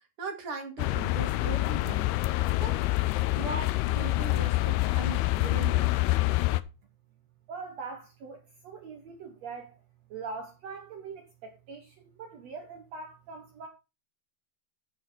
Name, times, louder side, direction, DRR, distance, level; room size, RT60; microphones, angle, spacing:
voice 1, 0.2-2.1 2.6-2.8 3.4-5.9, right 4 dB, 40° right, 2.3 m, -39 dB
sound 1, 0.8-6.6, left 19 dB, 80° left, 2.5 m, -26 dB
voice 2, 7.5-9.7 10.1-13.7, right 4 dB, 70° right, 1.6 m, -42 dB
10.0 x 8.8 x 3.9 m
omnidirectional pair, 4.9 m